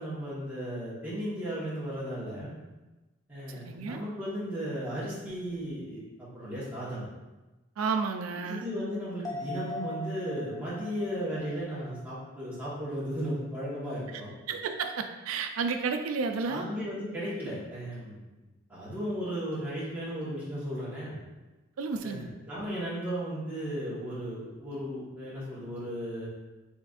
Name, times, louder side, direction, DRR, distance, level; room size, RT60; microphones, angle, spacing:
voice 1, 0.0-2.5 3.3-7.1 8.4-14.3 16.5-18.2 18.7-21.2 22.0-26.3, equal, 10° right, -10 dB, 1.2 m, -35 dB
voice 2, 3.6-4.0 7.8-8.7 14.5-16.6 21.8-22.3, right 5 dB, 90° right, 6 dB, 0.4 m, -31 dB
sound 1, 9.2-12.9 13.3-13.4, left 2 dB, 15° left, 0.3 m, -41 dB
3.8 x 3.3 x 2.5 m, 1.1 s
head